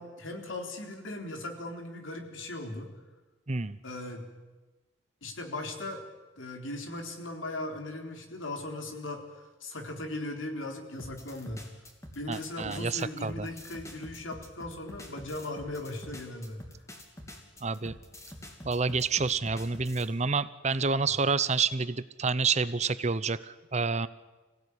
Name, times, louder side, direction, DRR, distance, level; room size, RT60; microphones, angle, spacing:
voice 1, 0.0-2.9 3.8-4.3 5.2-6.0 6.4-9.2 9.6-11.7 12.1-16.7, left 2 dB, 90° left, 3 dB, 3.8 m, -38 dB
voice 2, 3.5-3.8 12.3-13.5 17.6-17.9 18.6-24.1, right 4 dB, 35° right, 15 dB, 0.8 m, -28 dB
sound 1, 11.0-20.1, left 1 dB, 15° left, 2.9 m, -47 dB
26.0 x 16.5 x 9.8 m, 1.2 s
head